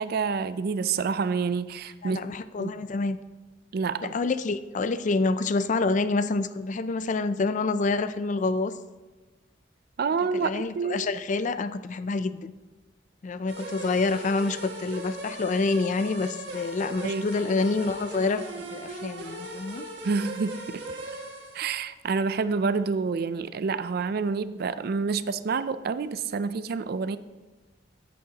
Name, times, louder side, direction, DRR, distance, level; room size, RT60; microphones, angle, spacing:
voice 1, 0.0-2.2 2.6-2.7 3.7-4.2 10.0-11.1 17.0-17.2 20.0-20.8 21.5-27.2, right 5 dB, 55° right, 14 dB, 0.4 m, -28 dB
voice 2, 2.0-3.2 4.0-8.8 10.3-12.5 13.2-19.9, left 3 dB, 45° left, 13 dB, 0.4 m, -27 dB
sound 1, 13.5-21.8, right 1 dB, 75° right, 1.9 m, -39 dB
13.5 x 8.4 x 2.9 m, 1.3 s
head